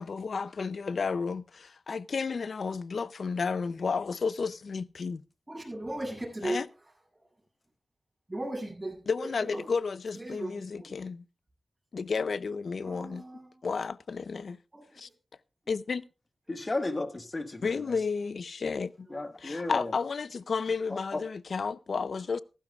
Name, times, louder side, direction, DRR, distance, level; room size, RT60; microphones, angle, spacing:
voice 1, 0.0-5.2 6.4-6.7 9.1-11.2 11.9-13.2 13.6-14.6 15.0-15.1 15.7-16.0 17.6-19.1 19.4-22.4, left 5 dB, 75° left, 0.5 m, -32 dB
voice 2, 5.5-6.7 8.3-9.7 10.1-11.0 12.8-13.6 14.7-15.0 18.8-19.2, right 1 dB, 20° right, 7.7 m, -38 dB
voice 3, 16.5-17.9 19.1-19.9 20.9-21.2, left 2 dB, 40° left, 1.6 m, -34 dB
15.0 x 15.0 x 2.4 m
cardioid pair, 55°, 0 cm